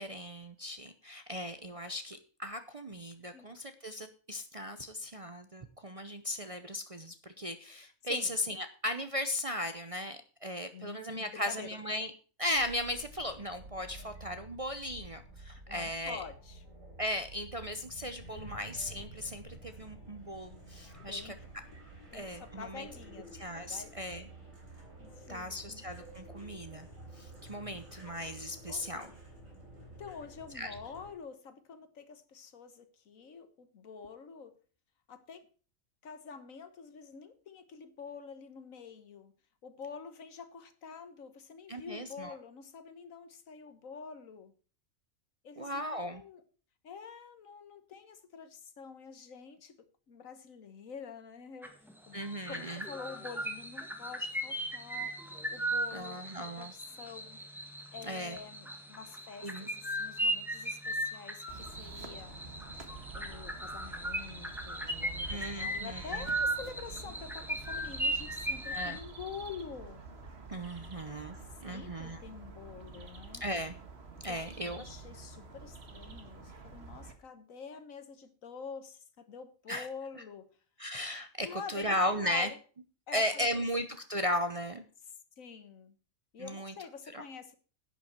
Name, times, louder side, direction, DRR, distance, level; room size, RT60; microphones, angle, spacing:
voice 1, 0.0-12.1 12.4-16.2 17.0-21.3 22.1-22.9 23.4-24.3 25.3-26.9 27.2-29.1 30.5-30.7 41.7-42.3 45.6-46.2 52.1-52.8 55.9-56.7 58.0-58.4 59.4-59.7 65.3-66.2 68.7-69.0 70.5-71.4 71.6-72.2 73.4-73.8 74.2-74.8 79.7-79.9 80.8-82.5 83.1-84.8 86.4-86.7 87.1-87.2, left 1 dB, 35° right, 8 dB, 0.7 m, -36 dB
voice 2, 10.7-11.7 15.7-16.6 18.3-18.6 21.1-21.4 22.1-23.3 23.7-23.9 25.0-25.9 28.1-28.3 28.7-28.9 30.0-34.5 35.1-35.4 36.0-39.3 39.6-44.5 45.4-46.4 46.8-49.8 50.1-51.7 52.1-52.2 52.5-57.4 57.9-62.4 63.1-70.0 71.3-73.4 74.2-80.5 81.4-82.6 83.1-83.6 85.4-86.0 86.3-87.6, left 6 dB, 75° left, 10 dB, 1.6 m, -47 dB
sound 1, 12.6-31.1, right 2 dB, 70° right, 4.4 m, -51 dB
sound 2, 51.6-51.9 52.2-69.0, right 1 dB, ahead, 1.5 m, -37 dB
sound 3, 61.5-77.1, right 3 dB, 50° right, 1.7 m, -48 dB
11.0 x 9.2 x 4.5 m, 0.39 s
omnidirectional pair, 1.4 m